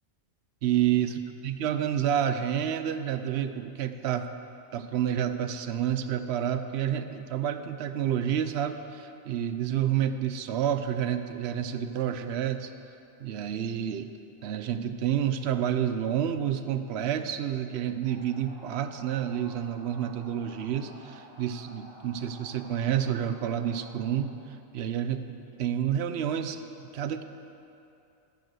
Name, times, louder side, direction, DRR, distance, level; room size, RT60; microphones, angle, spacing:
voice 1, 0.6-4.3 4.7-12.7 13.2-14.1 14.4-24.3 24.7-26.6 26.9-27.2, right 9 dB, 65° right, 9 dB, 0.8 m, -29 dB
sound 1, 18.0-24.2, equal, 85° left, 2.9 m, -51 dB
12.5 x 5.1 x 7.6 m, 2.7 s
omnidirectional pair, 1.3 m